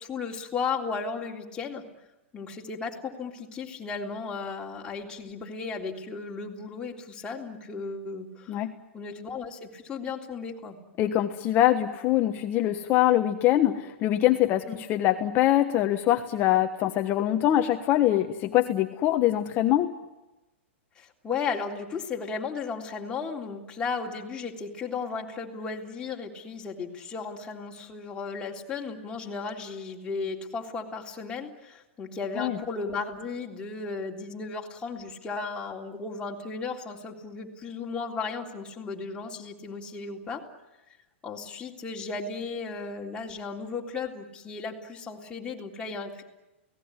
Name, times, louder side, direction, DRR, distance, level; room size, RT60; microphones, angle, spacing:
voice 1, 0.0-1.8 2.3-8.6 8.9-10.8 14.7-14.8 21.0-40.4 41.2-46.2, left 4 dB, 15° left, -1 dB, 3.6 m, -35 dB
voice 2, 11.0-19.9 32.4-32.6, left 13 dB, 30° left, 6 dB, 1.3 m, -23 dB
29.5 x 18.5 x 9.8 m, 1.0 s
hypercardioid pair, 150°, 7 cm